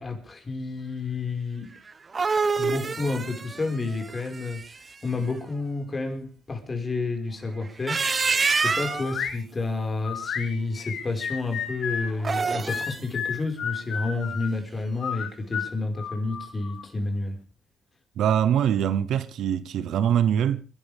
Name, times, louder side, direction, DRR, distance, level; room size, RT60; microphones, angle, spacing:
voice 1, 0.0-1.7 2.6-8.1 8.6-17.4, left 3 dB, 30° left, 5.2 m, -30 dB
sound 1, 1.9-4.9 7.7-9.2 12.1-13.0, right 4 dB, 35° right, 1.0 m, -27 dB
sound 2, 8.6-9.4 10.0-12.1 12.7-14.5 15.0-16.9, left 7 dB, 65° left, 2.7 m, -32 dB
voice 2, 18.2-20.6, right 9 dB, 75° right, 1.0 m, -23 dB
29.0 x 12.0 x 3.6 m
cardioid pair, 90°, 0 cm